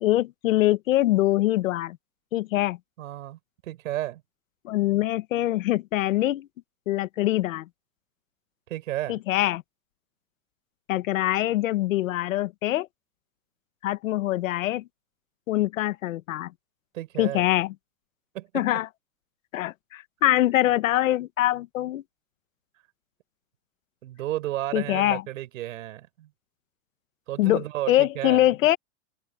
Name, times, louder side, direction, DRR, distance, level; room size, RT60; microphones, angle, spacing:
voice 1, 0.0-2.0 2.3-2.8 4.6-6.5 6.9-7.7 9.1-9.6 10.9-12.9 13.8-14.9 15.5-16.5 17.2-17.7 18.5-18.9 19.5-22.0 24.7-25.2 27.4-28.8, left 15 dB, 65° left, 1.3 m, -24 dB
voice 2, 3.0-4.2 8.7-9.2 16.9-17.5 18.3-18.6 24.0-26.3 27.3-28.4, right 14 dB, 65° right, 5.8 m, -33 dB
open air
supercardioid pair, 175°, 43 cm